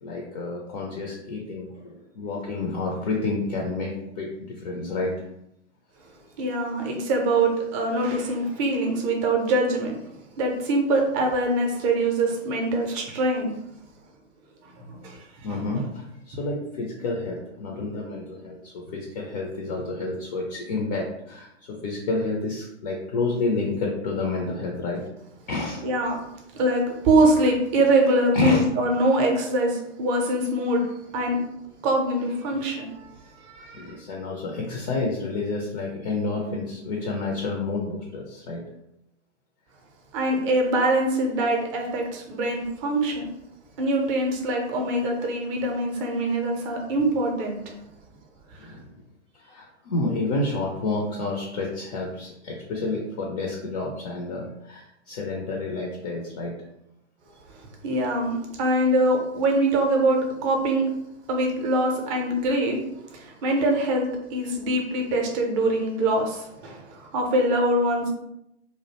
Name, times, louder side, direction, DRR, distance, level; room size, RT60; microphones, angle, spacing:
voice 1, 0.0-5.1 15.4-25.0 25.5-25.8 28.3-28.6 33.7-38.6 48.6-48.8 49.3-56.5, left 3 dB, 35° left, -1 dB, 0.4 m, -29 dB
voice 2, 6.4-10.1 10.4-13.5 14.8-15.2 15.5-15.9 25.8-26.2 26.5-30.8 31.1-31.4 31.8-33.1 33.4-33.9 40.1-43.3 43.8-47.6 57.8-60.9 61.3-62.8 63.1-68.1, right 1 dB, 30° right, 1 dB, 0.5 m, -23 dB
2.4 x 2.0 x 2.8 m, 0.81 s
hypercardioid pair, 120°, 35 cm